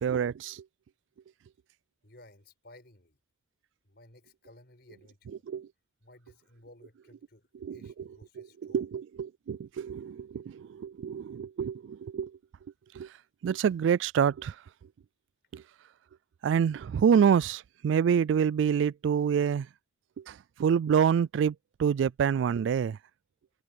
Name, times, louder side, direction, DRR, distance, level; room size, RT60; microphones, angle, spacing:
voice 1, 0.0-0.6 5.5-5.7 7.6-7.8 8.4-12.3 12.9-13.1 13.4-14.6 15.5-15.6 16.4-19.7 20.2-23.0, right 7 dB, 85° right, 0.3 m, -27 dB
voice 2, 2.0-3.2 3.8-5.4 6.0-8.9, left 1 dB, 60° left, 5.5 m, -56 dB
open air
head